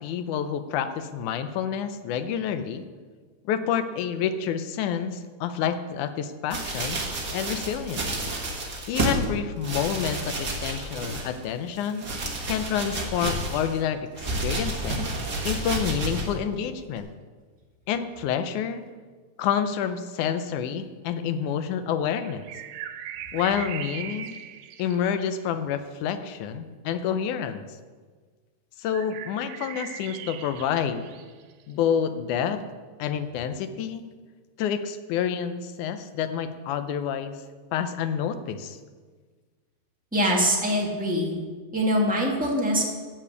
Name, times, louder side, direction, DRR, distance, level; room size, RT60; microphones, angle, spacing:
voice 1, 0.0-2.8 3.5-7.0 7.3-8.1 8.9-12.1 12.5-14.1 14.4-15.1 15.4-17.1 17.9-18.8 19.4-22.5 23.3-24.4 24.8-27.6 28.8-31.1 31.7-32.6 33.0-34.0 34.6-37.4 37.7-38.8, left 8 dB, 75° left, 10 dB, 1.9 m, -28 dB
sound 1, 6.5-9.3 9.6-11.4 11.8-13.8 14.2-16.3 17.0-17.1, right 2 dB, 40° right, 1.5 m, -30 dB
sound 2, 22.2-25.4 28.9-31.8, right 10 dB, 80° right, 1.7 m, -39 dB
voice 2, 40.1-41.3 41.7-42.9, equal, 5° right, -2 dB, 0.7 m, -23 dB
12.0 x 6.0 x 8.3 m, 1.5 s
omnidirectional pair, 4.0 m